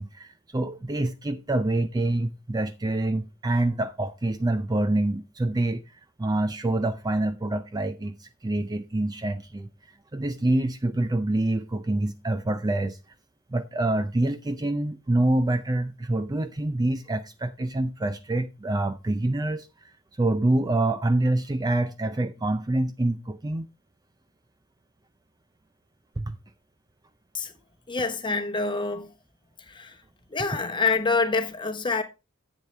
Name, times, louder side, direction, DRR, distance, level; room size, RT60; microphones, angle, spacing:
voice 1, 0.0-5.8 6.2-9.7 10.1-13.0 13.5-23.7 26.2-26.4, right 2 dB, 15° right, 0.4 m, -26 dB
voice 2, 27.9-29.1 29.7-29.9 30.3-32.0, left 4 dB, 20° left, 1.1 m, -26 dB
10.5 x 8.1 x 3.3 m
head